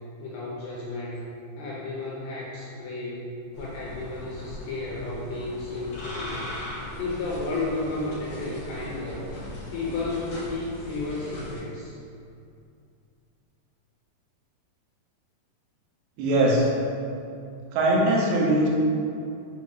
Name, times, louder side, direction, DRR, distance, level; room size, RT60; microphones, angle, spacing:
voice 1, 0.2-1.3 1.5-3.3 3.6-6.5 7.0-9.2 9.7-11.9, left 2 dB, 80° left, -6 dB, 2.3 m, -32 dB
sound 1, 3.5-11.6, left 1 dB, 65° left, 2.3 m, -39 dB
voice 2, 16.2-16.7 17.7-18.7, right 1 dB, 85° right, -3 dB, 2.7 m, -21 dB
6.4 x 3.0 x 2.2 m, 2.5 s
omnidirectional pair, 4.8 m